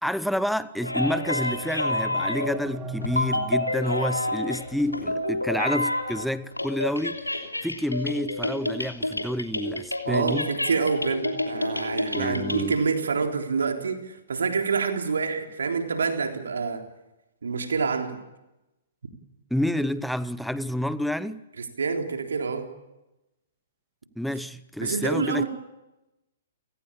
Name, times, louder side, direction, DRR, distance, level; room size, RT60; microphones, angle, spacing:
voice 1, 0.0-7.2 7.6-10.5 12.1-12.8 19.5-21.4 24.2-25.5, left 1 dB, ahead, 0.9 m, -29 dB
sound 1, 0.8-2.8 3.0-6.3 6.5-12.8, left 1 dB, 90° left, 3.1 m, -29 dB
sound 2, 1.2-4.9, right 3 dB, 20° right, 2.9 m, -39 dB
voice 2, 10.0-16.8 17.4-18.2 21.8-22.7 24.8-25.5, right 5 dB, 65° right, 3.7 m, -27 dB
30.0 x 19.0 x 8.8 m
figure-of-eight pair, 115°, 0 cm